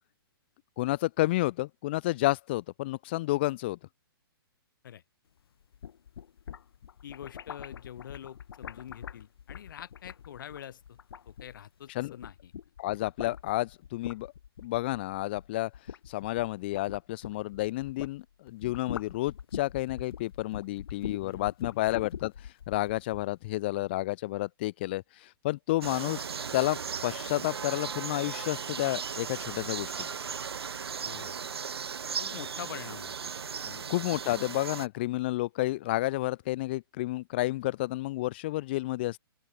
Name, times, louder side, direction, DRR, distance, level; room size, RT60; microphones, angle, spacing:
voice 1, 0.8-3.8 12.0-12.2 12.8-14.3 14.6-15.7 16.1-22.3 22.7-26.3 26.5-30.1 33.9-39.2, left 18 dB, 25° left, 0.3 m, -30 dB
sound 1, 5.6-11.8 12.1-18.2 18.5-23.3, left 8 dB, 75° left, 1.1 m, -43 dB
voice 2, 7.0-11.0 11.3-12.5 21.2-21.8 31.0-31.5 32.2-33.3 33.6-33.9, left 10 dB, 55° left, 4.6 m, -45 dB
sound 2, 25.8-34.9, right 6 dB, 90° right, 3.7 m, -37 dB
open air
hypercardioid pair, 160°, 13 cm